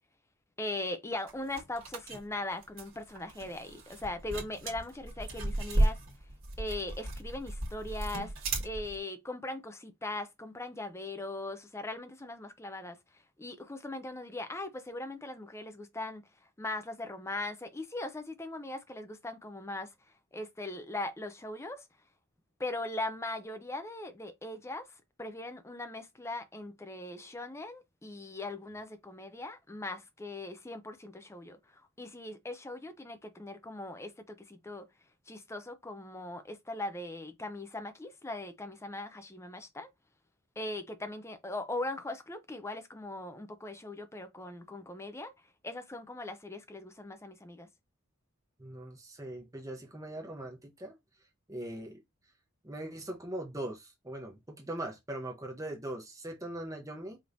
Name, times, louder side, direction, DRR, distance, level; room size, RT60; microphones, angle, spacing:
voice 1, 0.6-6.0 6.6-8.3 8.6-13.0 13.4-16.2 16.6-19.9 20.3-21.9 22.6-24.9 25.2-31.6 32.0-34.9 35.3-39.9 40.6-45.3 45.6-47.7, left 2 dB, 10° left, 0.5 m, -40 dB
sound 1, 1.3-9.0, right 1 dB, 65° right, 1.6 m, -34 dB
voice 2, 48.6-51.0 51.5-52.0 52.6-57.2, right 1 dB, 15° right, 0.8 m, -41 dB
5.0 x 3.0 x 2.6 m
head